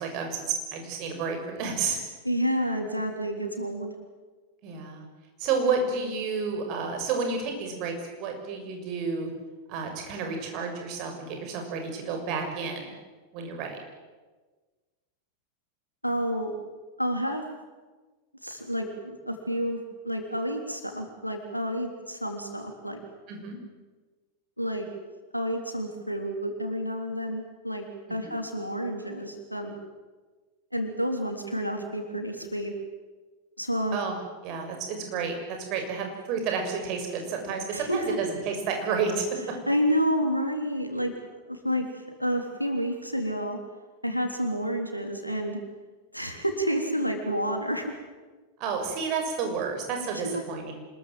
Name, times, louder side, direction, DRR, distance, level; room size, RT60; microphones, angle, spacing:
voice 1, 0.0-2.0 4.6-5.1 5.4-9.3 9.7-12.9 13.3-13.8 23.3-23.6 28.2-28.3 33.9-34.2 34.4-39.3 48.6-50.7, right 5 dB, 40° right, 4 dB, 6.4 m, -30 dB
voice 2, 2.2-3.9 16.0-16.5 17.0-17.4 18.4-19.8 20.0-23.0 24.6-24.9 25.3-29.8 30.7-32.7 33.6-34.0 37.7-38.2 39.7-41.1 41.5-41.9 42.2-43.6 44.0-45.6 46.1-47.9 50.2-50.4, equal, 90° left, 4 dB, 3.6 m, -29 dB
26.5 x 21.5 x 7.8 m, 1.3 s
figure-of-eight pair, 90°, 0 cm